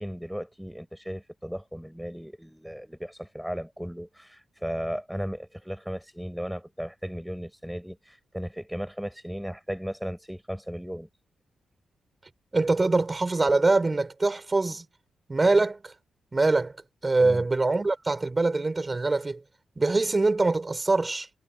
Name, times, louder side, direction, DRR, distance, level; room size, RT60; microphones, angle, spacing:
voice 1, 0.0-11.1 17.2-17.5, equal, ahead, 5.2 m, -36 dB
voice 2, 12.5-14.8 15.3-15.9 16.3-16.7 17.0-19.4 19.8-21.3, right 3 dB, 30° right, 5.2 m, -23 dB
cardioid pair, 60°, 0 cm